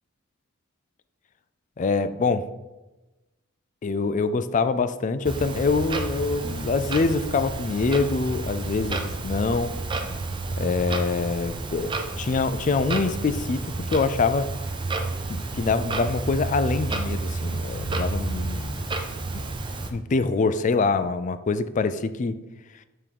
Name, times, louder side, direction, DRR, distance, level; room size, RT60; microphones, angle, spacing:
voice 1, 1.8-2.5 3.8-9.8 10.6-14.5 15.3-18.9 19.9-22.4, left 4 dB, 35° left, 11 dB, 0.3 m, -25 dB
Clock, 5.2-19.9, right 3 dB, 20° right, 0.5 m, -30 dB
6.9 x 3.7 x 4.6 m, 1.1 s
head